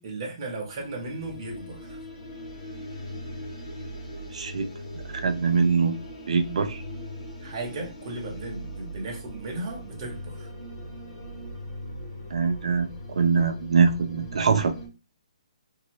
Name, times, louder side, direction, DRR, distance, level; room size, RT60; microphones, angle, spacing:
voice 1, 0.0-2.0 7.4-10.5, right 2 dB, 30° right, 1.0 m, -36 dB
sound 1, 0.6-14.9, equal, 35° left, 1.4 m, -40 dB
voice 2, 4.3-4.7 5.2-6.0 6.3-6.8 12.3-14.7, right 5 dB, 60° right, 0.6 m, -23 dB
2.7 x 2.7 x 3.0 m
hypercardioid pair, 175°, 4 cm